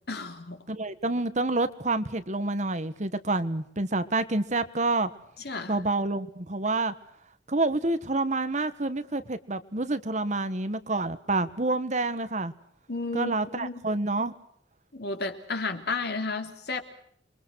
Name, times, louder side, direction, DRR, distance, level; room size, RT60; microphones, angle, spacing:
voice 1, 0.1-0.6 5.4-5.8 12.9-13.8 14.9-16.8, left 3 dB, 60° left, 6 dB, 3.2 m, -32 dB
voice 2, 0.7-5.1 5.7-6.9 7.5-12.5 13.1-14.4, right 2 dB, 40° right, 12 dB, 1.4 m, -28 dB
29.0 x 23.0 x 6.4 m, 0.67 s
head